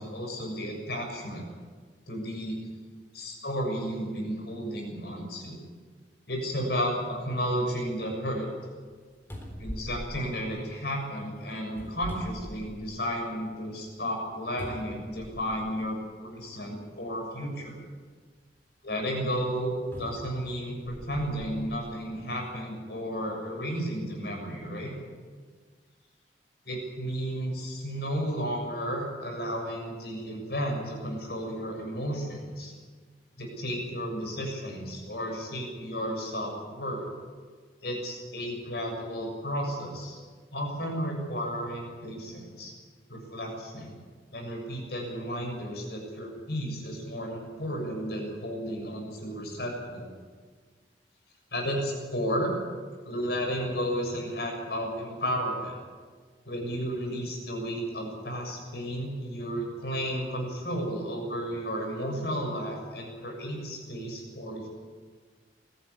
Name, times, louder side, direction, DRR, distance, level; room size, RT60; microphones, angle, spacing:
voice 1, 0.0-1.4 2.1-2.6 3.1-5.6 6.3-8.5 9.6-17.8 18.8-24.9 26.7-32.7 33.4-37.1 37.8-40.2 40.5-42.7 43.1-43.9 44.3-50.1 51.5-52.5 53.0-55.7 56.5-64.7, equal, 65° left, 2 dB, 7.1 m, -33 dB
sound 1, 9.3-11.0 11.7-13.1 13.5-13.6 14.6-15.7 16.6-16.8 19.9-21.6 22.3-22.4, equal, 15° left, 3.9 m, -42 dB
21.5 x 14.5 x 9.9 m, 1.5 s
head